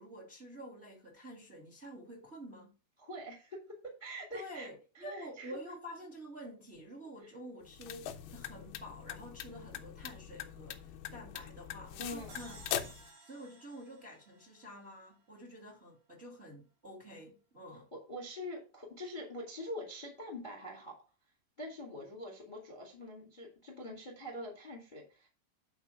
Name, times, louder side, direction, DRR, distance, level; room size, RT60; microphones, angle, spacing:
voice 1, 0.0-2.7 4.3-12.6 13.2-17.9, equal, 20° right, 1.7 m, -49 dB
voice 2, 3.0-4.7 4.9-5.6 12.0-12.3 18.1-20.9 21.6-25.3, equal, 15° left, 1.6 m, -44 dB
sound 1, 7.6-13.1, left 10 dB, 75° left, 2.5 m, -42 dB
sound 2, 12.3-15.6, right 3 dB, 85° right, 5.5 m, -57 dB
9.4 x 4.1 x 5.7 m
omnidirectional pair, 4.8 m